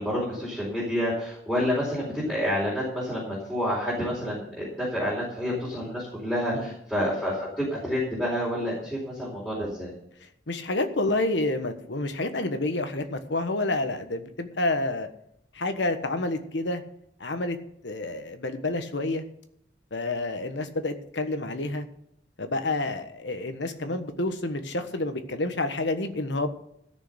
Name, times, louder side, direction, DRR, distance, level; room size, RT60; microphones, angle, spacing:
voice 1, 0.0-9.9, equal, 5° left, -7 dB, 4.3 m, -29 dB
voice 2, 10.5-15.1 15.5-16.8 17.2-17.6 17.8-19.2 19.9-21.9 22.4-26.5, left 2 dB, 75° left, 8 dB, 1.3 m, -29 dB
14.0 x 6.5 x 8.0 m, 0.75 s
head